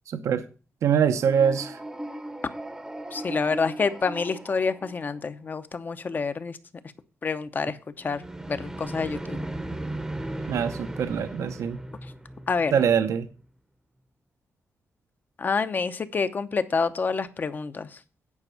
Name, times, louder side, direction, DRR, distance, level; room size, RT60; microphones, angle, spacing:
voice 1, 0.1-0.4 0.8-1.8 10.5-11.8 12.7-13.3, right 7 dB, 85° right, 0.8 m, -23 dB
sound 1, 1.1-5.4 8.0-13.0, right 1 dB, 10° right, 0.8 m, -37 dB
voice 2, 3.1-6.6 7.2-9.4 12.5-12.7 15.4-18.0, left 4 dB, 40° left, 0.8 m, -28 dB
9.7 x 5.3 x 6.8 m
wide cardioid pair, 125°, 5 cm